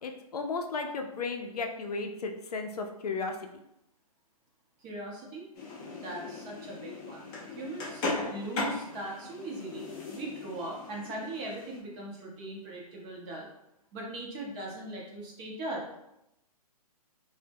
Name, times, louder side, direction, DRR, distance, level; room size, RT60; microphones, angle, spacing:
voice 1, 0.0-3.3, left 4 dB, 75° left, 4 dB, 0.4 m, -34 dB
voice 2, 4.8-5.5 5.9-8.0 8.3-13.5 13.9-16.0, right 2 dB, 25° right, -2 dB, 0.6 m, -40 dB
sound 1, 5.5-11.8, left 3 dB, 20° left, 0.4 m, -38 dB
2.1 x 2.0 x 3.3 m, 0.84 s
hypercardioid pair, 130°, 20 cm